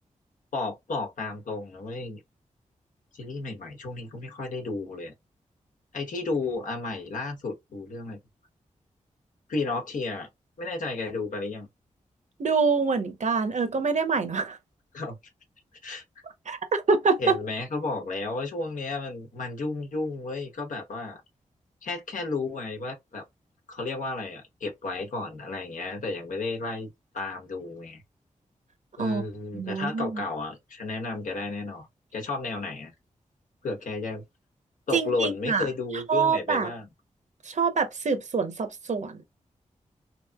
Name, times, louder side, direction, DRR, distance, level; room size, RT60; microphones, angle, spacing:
voice 1, 0.5-2.2 3.1-5.1 5.9-8.2 9.5-10.3 10.6-11.7 14.9-15.1 15.8-16.0 17.2-21.2 21.8-23.2 23.7-28.0 29.0-31.9 32.1-32.9 33.6-34.2 34.9-36.9, left 3 dB, 75° left, 1.1 m, -32 dB
voice 2, 12.4-14.6 16.5-17.3 29.0-29.2 29.5-30.2 34.9-35.7 36.1-36.7 37.4-39.2, right 5 dB, 60° right, 0.8 m, -25 dB
3.0 x 2.9 x 2.3 m
cardioid pair, 45°, 14 cm